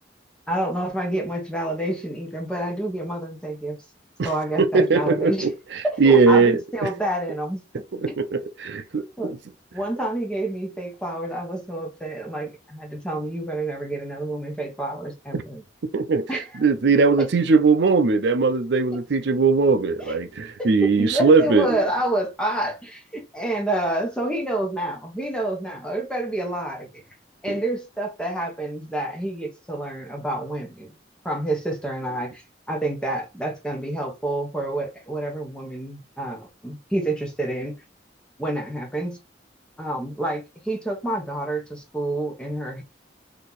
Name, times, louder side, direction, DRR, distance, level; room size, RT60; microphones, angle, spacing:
voice 1, 0.5-3.8 4.2-5.5 5.8-7.6 9.2-9.3 9.7-15.6 16.3-16.4 20.1-20.2 20.6-26.9 27.4-30.9 31.2-37.8 38.4-39.2 39.8-42.8, right 1 dB, 5° left, 1.1 m, -28 dB
voice 2, 4.6-6.9 7.9-9.4 15.3-15.4 15.8-21.8 27.5-27.6, right 4 dB, 70° right, 0.5 m, -20 dB
4.4 x 2.7 x 4.0 m
head